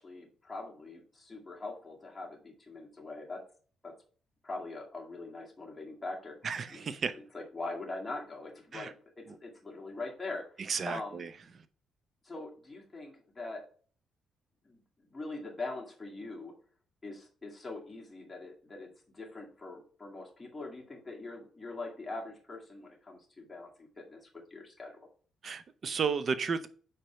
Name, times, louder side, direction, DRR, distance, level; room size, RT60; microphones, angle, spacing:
voice 1, 0.0-3.4 3.8-3.9 4.4-11.2 12.2-13.7 14.6-14.8 15.1-16.5 17.0-25.1, left 2 dB, 15° left, -2 dB, 2.1 m, -43 dB
voice 2, 6.4-7.1 8.7-8.9 10.7-11.0 25.4-26.7, right 5 dB, 50° right, 13 dB, 0.7 m, -32 dB
5.1 x 4.4 x 5.6 m, 0.44 s
cardioid pair, 90°, 0 cm